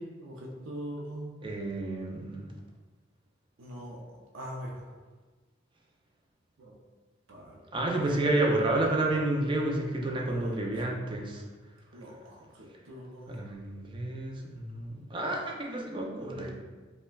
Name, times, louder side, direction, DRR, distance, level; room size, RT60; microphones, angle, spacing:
voice 1, 0.2-1.3 3.6-4.0 4.3-4.8 6.6-6.7 7.3-7.6 8.5-8.9 10.2-10.7 11.9-13.4 16.1-16.5, equal, 80° right, -2 dB, 0.5 m, -42 dB
voice 2, 1.4-2.5 7.7-11.4 13.3-16.5, right 2 dB, 25° right, 0 dB, 0.4 m, -30 dB
5.6 x 2.2 x 2.2 m, 1.4 s
head